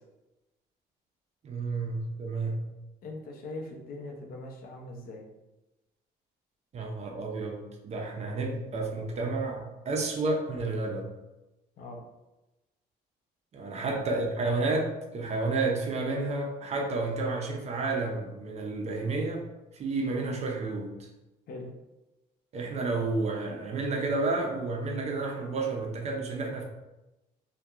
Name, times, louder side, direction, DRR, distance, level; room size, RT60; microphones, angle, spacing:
voice 1, 1.4-2.7 6.7-11.1 13.5-19.4 19.7-21.1 22.5-26.6, right 3 dB, 40° right, 2 dB, 0.5 m, -31 dB
voice 2, 3.0-5.2 11.8-12.0 13.7-13.9 21.5-21.7, left 2 dB, 60° left, 1 dB, 0.6 m, -41 dB
2.7 x 2.2 x 2.3 m, 1.0 s
cardioid pair, 110°, 17 cm